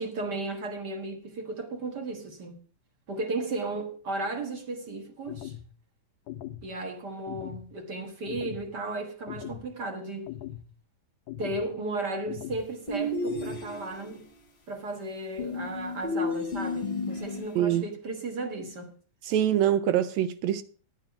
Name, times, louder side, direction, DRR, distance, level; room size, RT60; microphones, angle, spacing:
voice 1, 0.0-2.6 3.1-5.5 6.6-10.3 11.4-14.3 14.7-18.9, right 2 dB, 45° right, 1.5 m, -35 dB
sound 1, 5.3-5.7 6.3-6.7 7.3-7.7 8.3-8.7 9.3-9.7 10.3-10.7 11.3-11.7 12.3-12.7 13.3-13.7, left 13 dB, 80° left, 2.1 m, -40 dB
sound 2, 12.9-14.1 15.4-17.6, left 2 dB, 30° left, 1.2 m, -32 dB
voice 2, 19.2-20.6, right 11 dB, 75° right, 1.8 m, -24 dB
10.5 x 9.7 x 5.9 m
omnidirectional pair, 3.5 m